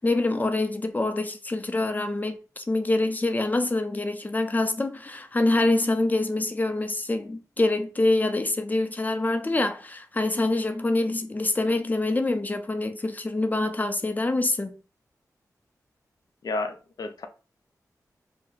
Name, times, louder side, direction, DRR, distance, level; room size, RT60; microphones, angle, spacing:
voice 1, 0.0-14.8, left 2 dB, 25° left, 0.5 m, -25 dB
voice 2, 16.4-17.3, left 2 dB, 75° left, 0.5 m, -31 dB
2.7 x 2.1 x 3.9 m
cardioid pair, 65°, 7 cm